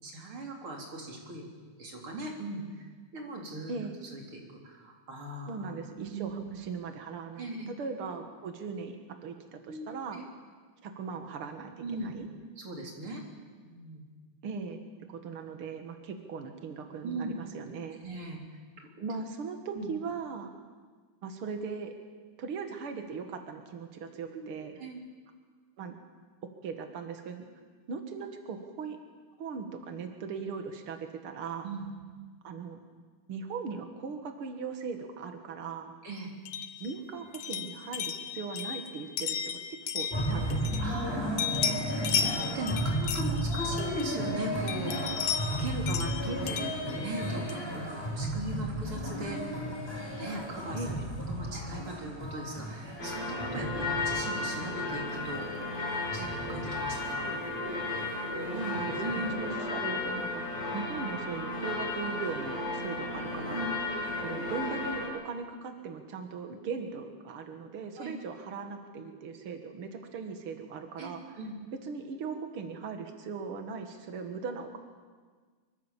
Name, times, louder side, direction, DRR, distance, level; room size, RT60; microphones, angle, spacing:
voice 1, 0.0-1.5 1.8-2.9 3.1-3.7 4.0-6.6 7.4-7.7 9.7-10.2 11.8-12.1 12.6-13.2 13.6-14.0 17.0-17.4 18.0-18.4 18.8-18.9 19.7-19.9 24.3-25.0 31.6-31.9 36.0-36.3 40.8-41.8 42.1-45.3 45.6-46.7 46.9-49.7 50.2-50.8 51.1-55.7 56.1-57.3 59.0-59.3 63.5-63.7 68.0-68.1 71.0-71.6, right 2 dB, 30° right, 0 dB, 4.1 m, -39 dB
voice 2, 5.5-10.2 10.8-12.3 14.4-14.8 15.1-18.0 19.0-20.5 21.2-21.9 22.4-24.7 25.8-25.9 26.4-27.5 27.9-29.0 29.4-31.7 32.4-32.8 33.3-35.9 36.8-41.0 46.3-46.4 50.7-51.0 58.5-63.6 64.2-71.4 71.8-74.8, right 5 dB, 80° right, 5 dB, 1.2 m, -39 dB
sound 1, 36.4-41.1 41.4-44.3 44.7-47.7, left 8 dB, 70° left, 1.8 m, -35 dB
sound 2, 40.1-58.1 58.4-58.5 58.7-59.4, equal, 5° left, 4.4 m, -35 dB
sound 3, 53.0-65.1, left 2 dB, 40° left, 7.9 m, -34 dB
24.5 x 24.0 x 7.4 m, 1.5 s
omnidirectional pair, 5.3 m